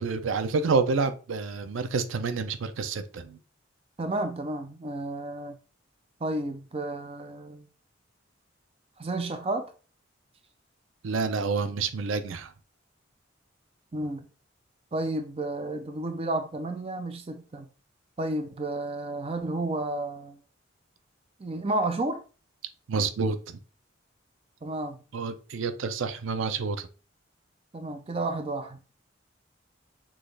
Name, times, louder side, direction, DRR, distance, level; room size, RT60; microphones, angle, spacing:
voice 1, 0.0-3.4 11.0-12.5 22.9-23.6 25.1-26.9, right 4 dB, 90° right, 0.5 m, -28 dB
voice 2, 4.0-5.6 6.2-7.7 9.0-9.7 13.9-14.2 14.9-17.7 18.2-20.4 21.4-22.2 24.6-25.0 27.7-28.9, right 2 dB, 30° right, 0.5 m, -31 dB
6.1 x 2.4 x 3.2 m
head